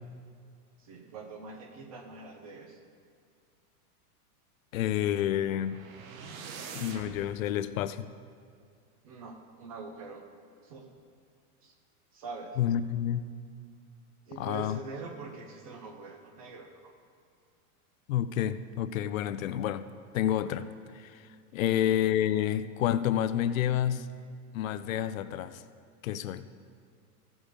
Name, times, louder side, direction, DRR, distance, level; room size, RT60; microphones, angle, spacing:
voice 1, 0.8-2.8 9.0-10.2 10.6-10.9 11.6-11.7 12.1-12.6 14.3-16.9 21.6-21.7, right 3 dB, 25° right, 4 dB, 0.4 m, -44 dB
voice 2, 4.7-5.8 6.7-8.1 12.6-13.3 14.4-14.8 18.1-19.9 20.1-20.7 20.9-24.1 24.5-25.6 26.0-26.5, left 11 dB, 60° left, 13 dB, 0.5 m, -29 dB
sound 1, 5.1-7.3, right 5 dB, 65° right, 1.2 m, -45 dB
14.5 x 5.4 x 6.5 m, 2.2 s
supercardioid pair, 165°, 46 cm